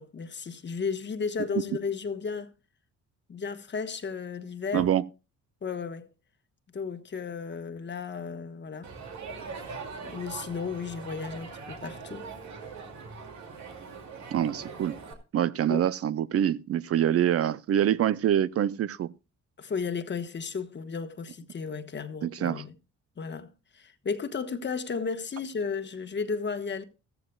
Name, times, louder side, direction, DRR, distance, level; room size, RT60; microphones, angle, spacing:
voice 1, 0.0-2.5 3.3-4.9 5.6-6.1 6.7-8.9 10.0-12.3 15.7-15.9 19.6-22.7 23.2-23.5 23.7-26.8, left 5 dB, 35° left, 1.3 m, -34 dB
voice 2, 4.7-5.0 14.3-15.0 15.3-19.1 22.2-22.6, right 10 dB, 50° right, 0.5 m, -25 dB
Crowd, 8.8-15.1, right 4 dB, 70° right, 2.5 m, -41 dB
14.0 x 14.0 x 2.3 m
cardioid pair, 90°, 30 cm